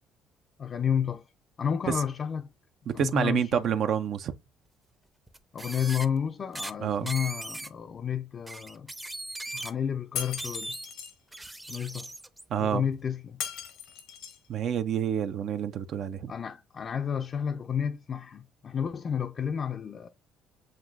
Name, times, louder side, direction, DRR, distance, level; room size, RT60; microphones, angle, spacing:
voice 1, 0.6-1.3 1.6-2.5 2.9-3.7 5.5-8.9 9.5-10.8 11.7-12.1 12.6-13.4 16.3-20.1, left 8 dB, 45° left, 0.4 m, -31 dB
voice 2, 2.9-4.3 6.8-7.1 12.5-12.8 14.5-16.3, right 8 dB, 60° right, 0.4 m, -28 dB
sound 1, 5.3-6.1 6.5-6.7 7.1-7.7 8.5-9.7 10.4-10.9 11.3-12.4, right 1 dB, 10° right, 0.5 m, -38 dB
Shatter, 10.2-11.1 13.4-14.5, left 8 dB, 80° left, 0.8 m, -37 dB
7.3 x 2.6 x 2.5 m
supercardioid pair, 80°, 0 cm